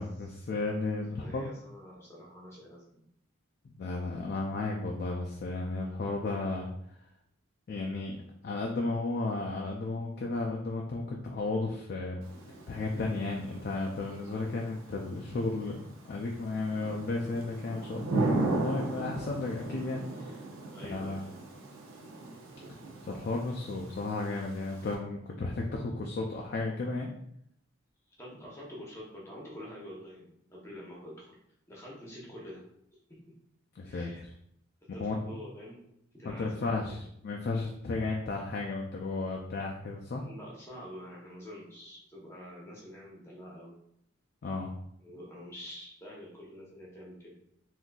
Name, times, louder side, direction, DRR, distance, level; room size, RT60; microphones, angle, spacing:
voice 1, 0.0-1.5 3.8-6.7 7.7-8.2 8.4-12.2 12.7-20.4 20.9-21.3 23.0-27.1 33.8-34.3 35.0-35.4 36.2-40.2 44.4-44.7, left 3 dB, 45° left, -1 dB, 0.3 m, -34 dB
voice 2, 1.2-3.0 17.4-17.5 20.7-21.4 28.2-31.4 31.7-32.6 33.1-33.2 33.9-34.2 34.9-35.9 36.1-37.0 40.2-43.7 45.0-47.4, equal, 15° left, -4 dB, 0.8 m, -47 dB
Thunder / Rain, 12.2-25.0, right 2 dB, 70° right, 0.6 m, -37 dB
3.7 x 2.6 x 2.3 m, 0.74 s
head